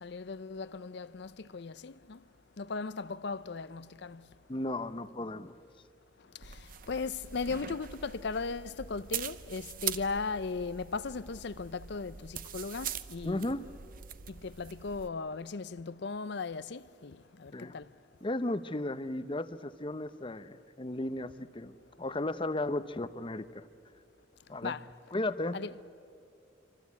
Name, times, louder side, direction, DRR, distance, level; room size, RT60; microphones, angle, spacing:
voice 1, 0.0-2.2 2.6-4.2 6.9-13.6 14.3-17.8 24.6-24.9 25.5-25.7, left 4 dB, 65° left, 0.6 m, -37 dB
voice 2, 4.5-5.5 13.2-13.6 17.5-17.7 18.2-23.7 24.5-24.7 25.1-25.6, left 2 dB, 25° left, 0.8 m, -35 dB
sound 1, 6.4-15.1, right 9 dB, 50° right, 0.8 m, -42 dB
26.5 x 25.5 x 8.4 m
head